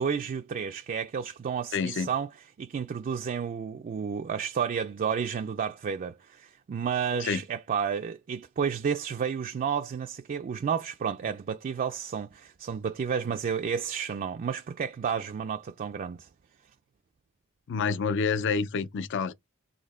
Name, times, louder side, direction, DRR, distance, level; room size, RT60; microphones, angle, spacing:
voice 1, 0.0-2.3 2.6-16.3, right 7 dB, 40° right, 0.3 m, -31 dB
voice 2, 1.7-2.1 7.2-7.4 17.7-19.3, left 5 dB, 60° left, 0.4 m, -28 dB
4.1 x 2.7 x 4.1 m
head